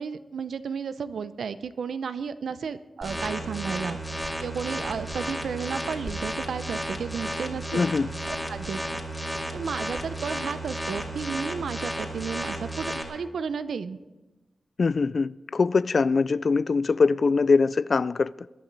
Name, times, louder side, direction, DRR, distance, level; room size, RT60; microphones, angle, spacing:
voice 1, 0.0-4.0 4.4-7.9 8.3-8.8 9.5-14.0, right 6 dB, 85° right, 0.6 m, -33 dB
sound 1, 3.0-13.0, right 1 dB, 5° left, 2.3 m, -33 dB
voice 2, 7.7-8.1 14.8-18.3, left 4 dB, 55° left, 0.3 m, -22 dB
21.5 x 11.0 x 4.0 m
wide cardioid pair, 95°, 0 cm